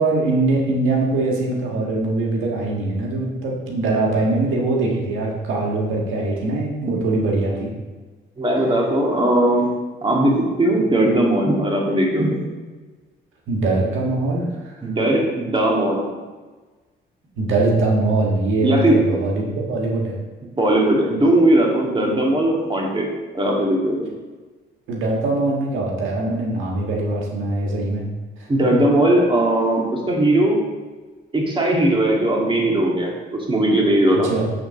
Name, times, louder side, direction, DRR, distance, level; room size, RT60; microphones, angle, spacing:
voice 1, 0.0-7.7 13.5-14.8 17.3-20.2 24.9-28.0 28.4-28.5 34.2-34.5, right 2 dB, 85° right, -1 dB, 1.5 m, -22 dB
voice 2, 8.4-9.7 10.0-12.4 14.8-16.1 18.6-19.0 20.6-23.1 23.3-24.1 28.5-30.6 31.3-34.3, right 1 dB, 25° right, -1 dB, 2.1 m, -18 dB
8.5 x 3.9 x 6.5 m, 1.3 s
cardioid pair, 90°, 20 cm